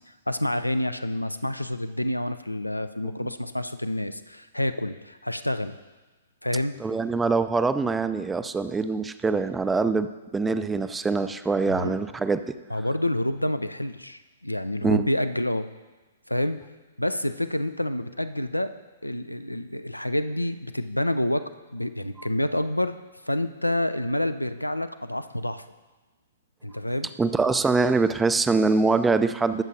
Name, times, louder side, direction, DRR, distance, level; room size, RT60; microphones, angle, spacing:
voice 1, 0.3-5.8 6.4-6.7 11.6-11.9 12.7-15.7 16.3-16.6 17.0-18.7 19.0-21.4 21.7-22.9 23.3-25.6 26.6-27.1, left 1 dB, 90° left, 11 dB, 0.5 m, -28 dB
voice 2, 6.8-12.5 14.8-15.1 22.2-22.3 27.2-29.6, right 4 dB, 10° right, 11 dB, 0.4 m, -24 dB
21.0 x 7.2 x 2.7 m, 1.2 s
figure-of-eight pair, 115°, 0 cm